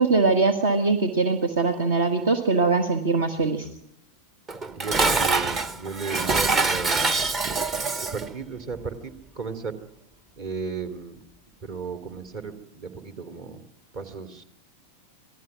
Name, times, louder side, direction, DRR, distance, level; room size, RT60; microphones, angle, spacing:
voice 1, 0.0-3.7, right 4 dB, 60° right, 7 dB, 1.6 m, -22 dB
voice 2, 3.4-3.8 4.7-7.2 8.0-9.8 10.4-11.2 11.6-13.6 13.9-14.4, right 5 dB, 45° right, 10 dB, 2.7 m, -35 dB
Dishes pots and pans, 4.5-8.3, right 3 dB, 25° right, 0.9 m, -24 dB
26.5 x 18.0 x 6.0 m, 0.73 s
figure-of-eight pair, 90°, 0 cm